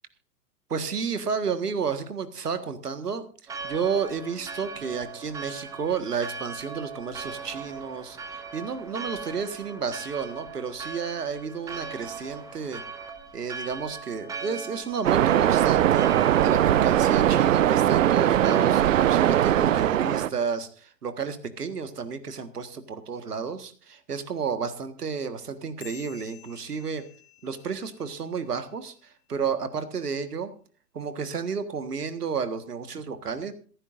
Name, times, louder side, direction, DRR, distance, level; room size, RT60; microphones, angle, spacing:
voice 1, 0.7-3.3 3.6-12.8 13.3-16.1 16.4-27.0 27.4-30.5 30.9-33.5, right 6 dB, 70° right, 10 dB, 1.7 m, -31 dB
Church bell, 3.5-18.6, right 4 dB, 5° right, 0.8 m, -40 dB
Waves surf, 15.0-20.3, right 11 dB, 55° right, 0.6 m, -20 dB
sound 1, 25.8-28.7, left 11 dB, 55° left, 2.4 m, -51 dB
27.0 x 9.8 x 2.6 m, 0.39 s
figure-of-eight pair, 110°, 48 cm